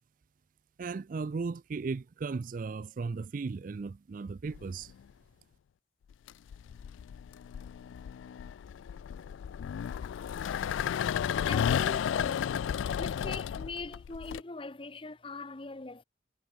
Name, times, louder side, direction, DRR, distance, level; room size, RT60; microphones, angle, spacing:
voice 1, 0.8-4.9, right 4 dB, 45° right, 0.4 m, -36 dB
sound 1, 4.5-5.0 6.1-14.4, left 8 dB, 80° left, 0.3 m, -33 dB
voice 2, 11.5-12.5 13.0-16.0, left 3 dB, 25° left, 0.8 m, -42 dB
head